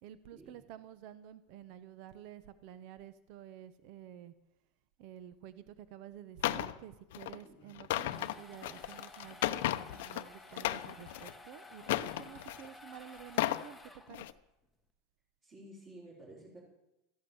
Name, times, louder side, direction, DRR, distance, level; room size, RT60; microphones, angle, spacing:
voice 1, 0.0-4.3 5.0-14.3, right 10 dB, 50° right, 14 dB, 0.8 m, -51 dB
sound 1, 6.4-6.7 7.1-7.4 7.7-10.2 10.5-11.3 11.8-12.7 13.2-13.7 14.1-14.3, left 14 dB, 75° left, 0.7 m, -34 dB
sound 2, 7.8-14.4, left 2 dB, 5° left, 1.1 m, -54 dB
voice 2, 15.4-16.6, right 1 dB, 25° right, -7 dB, 4.2 m, -53 dB
14.0 x 11.5 x 8.0 m, 0.92 s
supercardioid pair, 165°, 0 cm